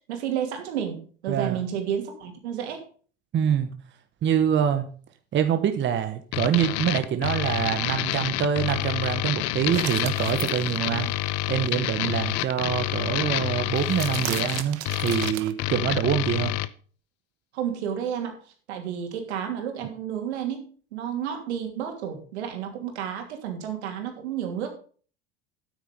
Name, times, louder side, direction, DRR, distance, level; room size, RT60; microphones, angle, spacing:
voice 1, 0.1-2.8 17.5-18.4 18.7-24.7, right 9 dB, 75° right, 4 dB, 2.9 m, -31 dB
voice 2, 1.3-1.6 3.3-3.7 4.2-4.9 5.3-11.1 11.5-16.5, right 9 dB, 35° right, 8 dB, 1.1 m, -25 dB
sound 1, 6.3-16.7, left 16 dB, 50° left, 0.8 m, -28 dB
sound 2, 9.7-10.8 13.7-15.5, right 14 dB, 50° right, 1.1 m, -35 dB
9.4 x 8.4 x 5.2 m, 0.42 s
hypercardioid pair, 90°, 33 cm